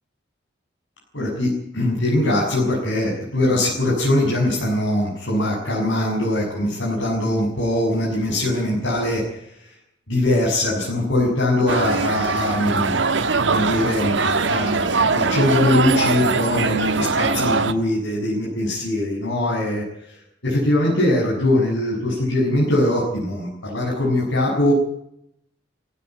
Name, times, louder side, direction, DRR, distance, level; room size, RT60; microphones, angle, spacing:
voice 1, 1.1-9.7 10.1-12.9 13.4-24.7, left 1 dB, 90° left, -5 dB, 7.0 m, -22 dB
sound 1, 11.7-17.7, right 4 dB, 80° right, 1.4 m, -21 dB
18.0 x 16.0 x 9.4 m, 0.75 s
head